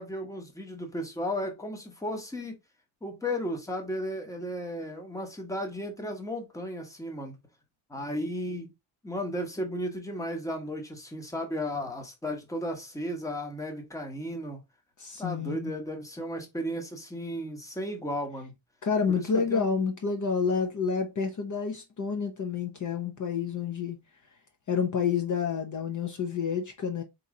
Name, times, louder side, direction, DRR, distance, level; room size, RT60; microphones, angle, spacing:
voice 1, 0.0-2.5 3.0-7.4 7.9-8.7 9.0-14.6 15.2-18.5 19.1-19.7, equal, 5° left, 1.0 m, -34 dB
voice 2, 15.0-15.7 18.8-24.0 24.7-27.0, left 6 dB, 45° left, 0.8 m, -29 dB
4.2 x 3.1 x 3.6 m
wide cardioid pair, 160°, 43 cm